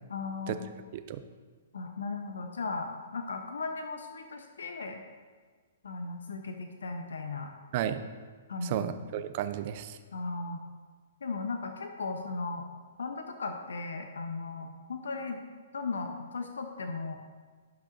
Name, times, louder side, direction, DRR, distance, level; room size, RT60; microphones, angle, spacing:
voice 1, 0.1-0.6 1.7-5.0 5.8-7.5 8.5-8.9 10.1-10.6 11.2-12.7 13.0-15.4 15.7-17.2, left 3 dB, 80° left, 5 dB, 0.7 m, -36 dB
voice 2, 7.7-8.0 8.6-10.0, right 11 dB, 45° right, 10 dB, 0.5 m, -33 dB
11.0 x 5.8 x 2.6 m, 1.5 s
hypercardioid pair, 125°, 0 cm